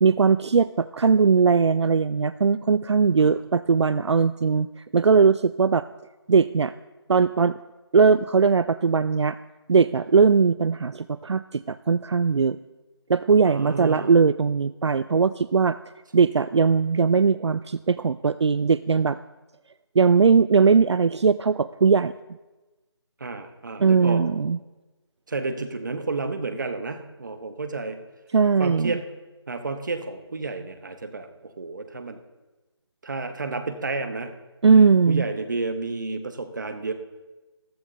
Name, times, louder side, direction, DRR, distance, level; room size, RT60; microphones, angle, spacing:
voice 1, 0.0-5.8 6.3-6.7 7.1-7.6 7.9-9.4 9.7-12.6 13.1-15.8 16.1-19.2 20.0-22.1 23.8-24.6 28.3-28.9 34.6-35.2, right 5 dB, 75° right, 14 dB, 0.4 m, -19 dB
voice 2, 13.4-14.1 23.2-24.2 25.3-28.0 28.6-29.1 29.5-32.2 33.0-34.3 35.1-36.9, right 3 dB, 45° right, 8 dB, 1.1 m, -31 dB
14.5 x 12.0 x 3.9 m, 1.1 s
figure-of-eight pair, 170°, 14 cm